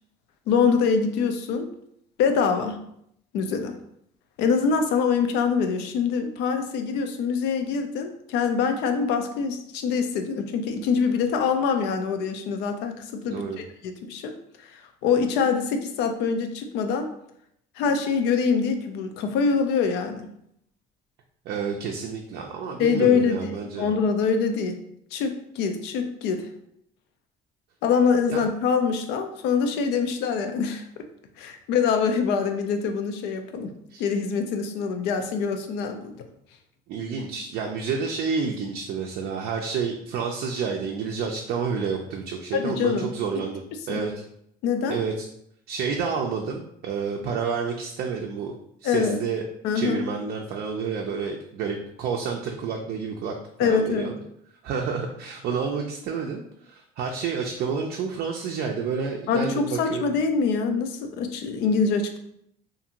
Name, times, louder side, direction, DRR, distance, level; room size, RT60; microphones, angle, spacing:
voice 1, 0.5-1.7 2.2-2.8 3.3-3.8 4.4-14.3 14.7-17.1 17.8-20.3 22.8-23.5 23.8-24.8 25.1-26.5 27.8-31.0 31.4-33.7 34.0-36.2 42.5-43.1 43.9-44.1 44.6-45.0 48.8-49.2 49.6-50.1 53.6-54.1 59.3-62.2, left 5 dB, 90° left, 6 dB, 0.4 m, -24 dB
voice 2, 13.3-13.6 21.5-23.9 28.3-28.4 33.9-34.0 36.9-44.1 44.9-45.3 45.7-48.5 48.8-49.4 49.7-53.3 53.6-54.1 54.6-60.1, right 5 dB, 70° right, 1 dB, 0.4 m, -29 dB
2.6 x 2.5 x 2.8 m, 0.73 s
cardioid pair, 110°, 17 cm